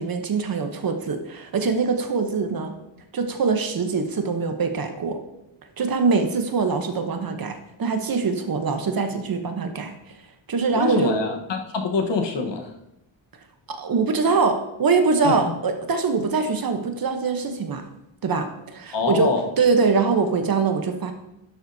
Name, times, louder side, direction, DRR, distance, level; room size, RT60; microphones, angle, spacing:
voice 1, 0.0-2.7 3.1-5.2 5.8-10.2 10.5-11.2 13.7-17.9 18.2-21.1, right 4 dB, 45° right, 6 dB, 1.0 m, -23 dB
voice 2, 10.8-12.7 15.2-15.5 18.9-19.5, left 4 dB, 60° left, 3 dB, 1.3 m, -25 dB
11.5 x 7.1 x 2.7 m, 0.87 s
wide cardioid pair, 140°, 49 cm